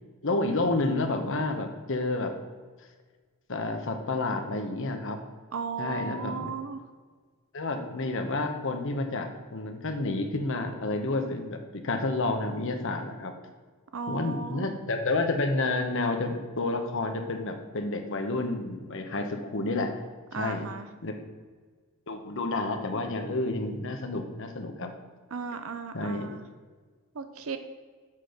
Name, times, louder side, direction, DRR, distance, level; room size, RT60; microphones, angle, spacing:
voice 1, 0.2-2.3 3.5-5.2 5.8-6.5 7.5-13.3 14.1-20.0 20.3-20.7 21.0-21.1 22.1-24.9 25.9-26.3, left 2 dB, 55° left, 5 dB, 1.0 m, -30 dB
voice 2, 5.5-6.8 13.9-14.7 20.3-20.9 25.3-26.4 27.1-27.6, right 5 dB, 65° right, 9 dB, 0.6 m, -35 dB
7.6 x 6.1 x 5.0 m, 1.5 s
head